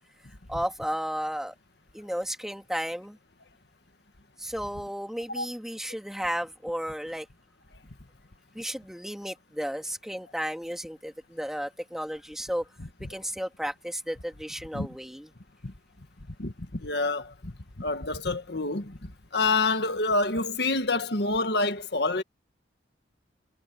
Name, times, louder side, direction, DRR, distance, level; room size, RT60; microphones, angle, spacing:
voice 1, 0.5-1.6 1.9-3.2 4.4-7.3 8.5-12.6 13.0-15.3, equal, ahead, 2.2 m, -33 dB
voice 2, 16.4-22.2, left 3 dB, 65° left, 1.7 m, -27 dB
head